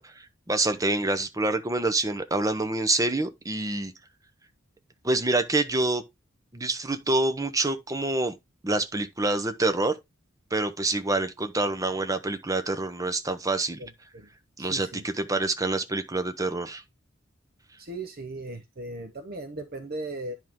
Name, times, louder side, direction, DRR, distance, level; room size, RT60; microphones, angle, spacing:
voice 1, 0.0-3.9 5.0-6.0 6.5-8.3 8.6-9.9 10.5-13.8 14.6-16.8, right 2 dB, 15° right, 0.9 m, -26 dB
voice 2, 13.8-14.3 14.6-15.0 17.8-20.4, right 2 dB, 50° right, 0.9 m, -37 dB
10.0 x 4.5 x 3.6 m
head